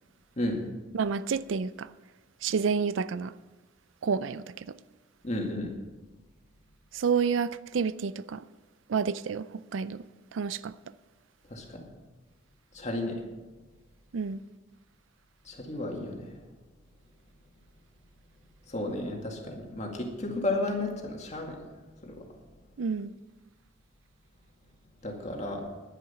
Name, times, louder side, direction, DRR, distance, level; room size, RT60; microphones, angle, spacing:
voice 1, 0.9-1.9 2.4-3.3 4.0-4.8 6.9-8.4 8.9-10.1 10.3-10.7 14.1-14.4 22.8-23.1, right 6 dB, 85° right, 0.4 m, -29 dB
voice 2, 5.2-5.7 11.5-11.8 12.7-13.2 15.5-16.3 18.7-21.6 22.0-22.2 25.0-25.6, left 2 dB, 35° left, 2.1 m, -33 dB
10.5 x 10.0 x 5.7 m
head